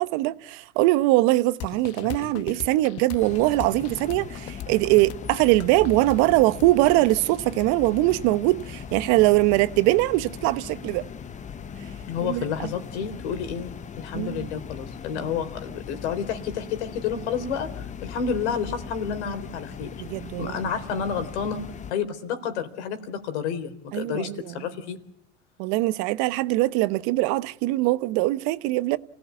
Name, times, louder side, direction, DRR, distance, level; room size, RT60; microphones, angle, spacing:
voice 1, 0.0-11.1 12.2-12.7 14.1-14.5 15.2-15.3 20.0-20.6 23.9-24.4 25.6-29.0, right 19 dB, 50° right, 1.1 m, -22 dB
sound 1, 1.6-9.1, left 11 dB, 45° left, 1.1 m, -40 dB
sound 2, 3.2-21.9, left 7 dB, 20° left, 1.0 m, -39 dB
voice 2, 12.1-19.9 20.4-21.6 21.9-25.0, left 7 dB, 65° left, 3.8 m, -30 dB
28.5 x 17.0 x 8.4 m
hypercardioid pair, 105°, 36 cm